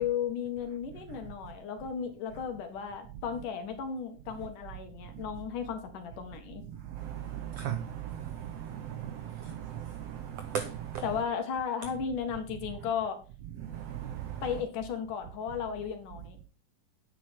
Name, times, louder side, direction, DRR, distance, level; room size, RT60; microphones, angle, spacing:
voice 1, 0.0-6.6 11.0-13.2 14.4-16.4, left 7 dB, 75° left, 3.2 m, -35 dB
voice 2, 6.8-11.0 13.6-14.4, right 9 dB, 85° right, 1.4 m, -37 dB
9.7 x 8.8 x 4.5 m
omnidirectional pair, 3.8 m